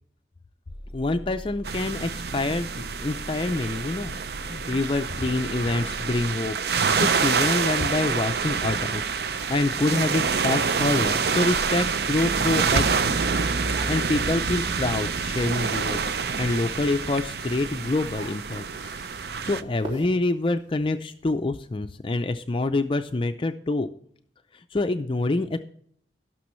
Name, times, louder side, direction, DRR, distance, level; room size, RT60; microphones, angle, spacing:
sound 1, 0.7-19.2, left 1 dB, 10° right, 1.4 m, -40 dB
voice 1, 0.9-2.7 3.0-4.1 4.4-9.1 9.5-13.2 13.9-16.0 16.4-18.6 19.4-23.9 24.5-25.6, left 2 dB, 30° left, 8 dB, 0.4 m, -26 dB
sound 2, 1.6-19.6, right 5 dB, 60° right, 0.5 m, -27 dB
sound 3, 4.6-11.3 11.7-21.4, right 1 dB, 30° right, 3.0 m, -47 dB
17.5 x 6.2 x 3.1 m, 0.63 s
head